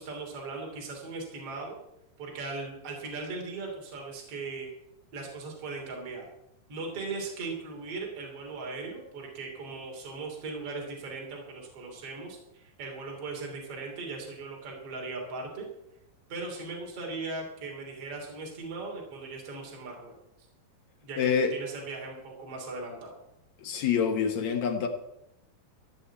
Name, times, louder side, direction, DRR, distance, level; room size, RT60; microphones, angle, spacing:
voice 1, 0.0-1.8 2.2-4.7 5.1-6.3 6.7-15.7 16.3-20.2 21.0-21.2 21.5-23.2, right 3 dB, 40° right, 0 dB, 3.7 m, -38 dB
voice 2, 21.2-21.5 23.6-24.9, left 7 dB, 65° left, 4 dB, 2.0 m, -26 dB
15.0 x 6.3 x 8.3 m, 0.83 s
omnidirectional pair, 4.5 m